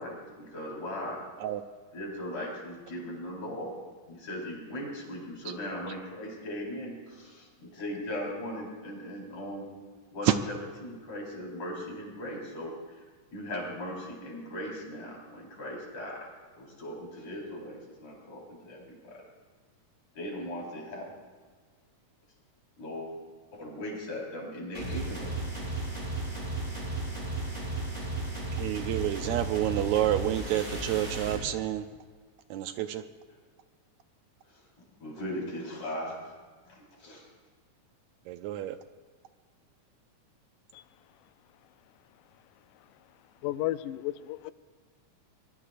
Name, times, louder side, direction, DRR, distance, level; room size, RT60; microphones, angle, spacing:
voice 1, 0.0-1.2 1.9-3.8 4.1-9.7 10.1-13.0 13.3-16.3 16.5-19.2 20.2-21.1 22.8-23.1 23.5-25.3 25.6-25.9 33.3-33.4 34.5-36.3 36.7-37.3, left 1 dB, 55° left, 5.5 m, -39 dB
sound 1, 24.7-31.4, right 2 dB, 20° right, 6.8 m, -34 dB
voice 2, 28.6-31.9 32.5-33.0 38.3-38.8, right 12 dB, 80° right, 1.7 m, -29 dB
voice 3, 43.4-44.5, left 15 dB, 85° left, 2.2 m, -33 dB
24.5 x 22.0 x 2.5 m
omnidirectional pair, 3.7 m